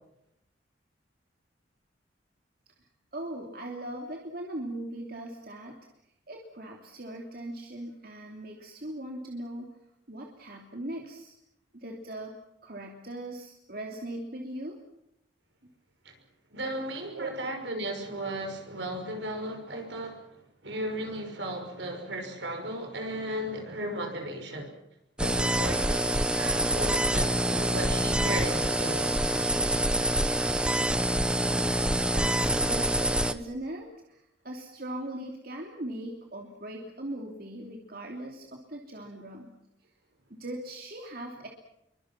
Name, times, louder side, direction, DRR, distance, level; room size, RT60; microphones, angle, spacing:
voice 1, 3.1-5.8 6.3-9.7 10.1-11.3 11.7-12.3 12.6-14.8 17.1-17.3 32.1-39.5 40.3-41.5, right 1 dB, 55° right, 1 dB, 2.9 m, -39 dB
voice 2, 16.5-20.3 20.6-24.7 25.2-29.1, right 1 dB, 80° right, 4 dB, 6.0 m, -35 dB
sound 1, 25.2-33.3, right 1 dB, 5° right, 0.9 m, -26 dB
28.0 x 24.0 x 6.0 m, 0.84 s
head